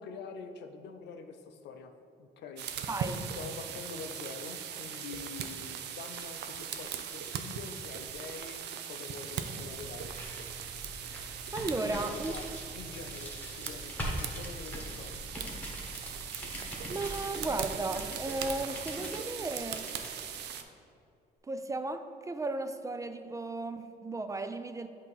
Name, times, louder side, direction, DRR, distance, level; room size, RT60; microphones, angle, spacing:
voice 1, 0.0-1.9 2.2-2.7 3.4-10.1 11.9-12.5 12.7-15.2, left 5 dB, 80° left, 7 dB, 0.5 m, -45 dB
sound 1, 2.6-20.6, right 8 dB, 80° right, 0.5 m, -40 dB
voice 2, 2.9-3.2 11.5-12.3 16.9-19.9 21.4-24.9, right 2 dB, 20° right, 9 dB, 0.3 m, -35 dB
sound 2, 9.6-20.5, equal, 10° left, 1.3 m, -42 dB
7.9 x 2.8 x 5.4 m, 2.4 s
cardioid pair, 90°, 18 cm